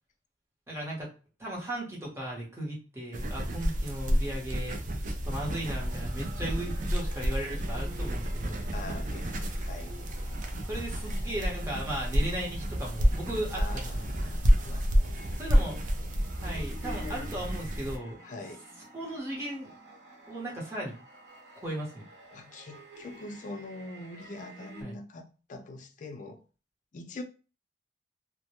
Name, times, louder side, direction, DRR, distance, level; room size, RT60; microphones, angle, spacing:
voice 1, 0.7-1.1 1.4-4.8 5.2-8.7 10.6-14.1 15.4-15.8 16.3-18.2 18.9-19.7 20.3-21.0 21.6-22.0 24.8-25.0, right 1 dB, 15° right, 0.9 m, -36 dB
sound 1, 3.1-18.0, equal, 45° right, 0.4 m, -29 dB
sound 2, 5.3-24.8, right 1 dB, 75° right, 1.1 m, -51 dB
voice 2, 8.7-10.0 13.6-15.1 15.7-16.7 17.0-17.3 18.2-18.6 22.3-26.4 26.9-27.2, left 2 dB, 45° left, 0.4 m, -44 dB
2.1 x 2.1 x 2.8 m
head